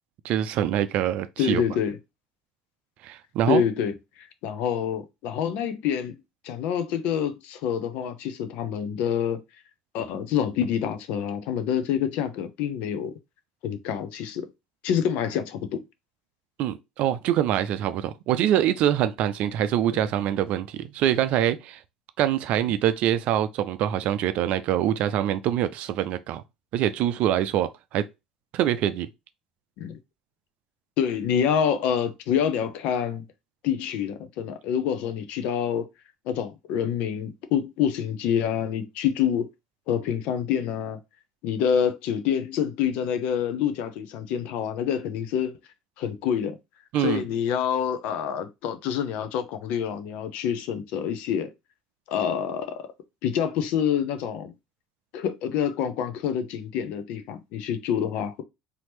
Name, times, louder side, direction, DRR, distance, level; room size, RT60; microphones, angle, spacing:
voice 1, 0.2-1.6 3.0-3.6 16.6-21.8 22.2-26.4 26.7-28.0 28.5-29.1 46.9-47.2, right 11 dB, 50° right, 0.5 m, -24 dB
voice 2, 1.4-2.0 3.5-6.1 6.4-9.4 9.9-13.1 13.6-14.5 14.8-15.8 19.9-20.0 29.8-30.0 31.0-33.2 33.6-35.9 36.3-39.5 39.9-41.0 41.4-45.5 46.0-46.6 46.9-51.5 52.1-52.9 53.2-54.5 55.1-58.4, left 8 dB, 55° left, 0.7 m, -27 dB
4.3 x 2.8 x 3.1 m
figure-of-eight pair, 65°, 3 cm